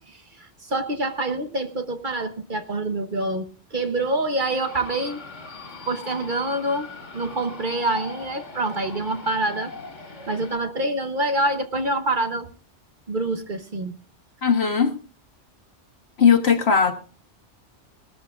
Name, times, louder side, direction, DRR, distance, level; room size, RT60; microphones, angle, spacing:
voice 1, 0.1-5.2 5.9-9.7 10.3-12.5 13.1-14.0, right 2 dB, 45° right, 7 dB, 1.2 m, -26 dB
sound 1, 4.6-10.6, left 4 dB, 80° left, 2.2 m, -40 dB
voice 2, 14.4-14.9 16.2-16.9, left 6 dB, 60° left, 5 dB, 1.7 m, -18 dB
20.0 x 13.5 x 2.5 m, 0.38 s
omnidirectional pair, 1.2 m